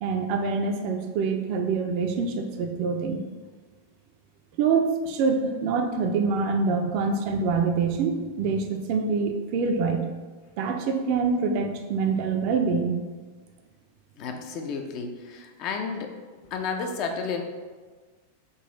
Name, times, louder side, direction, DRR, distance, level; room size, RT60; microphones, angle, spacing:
voice 1, 0.0-3.2 4.6-10.1 10.6-13.0, right 4 dB, 45° right, 4 dB, 0.4 m, -25 dB
voice 2, 14.2-16.1 16.5-17.4, left 5 dB, 40° left, 4 dB, 0.4 m, -31 dB
3.8 x 2.4 x 3.8 m, 1.4 s
figure-of-eight pair, 90°, 0 cm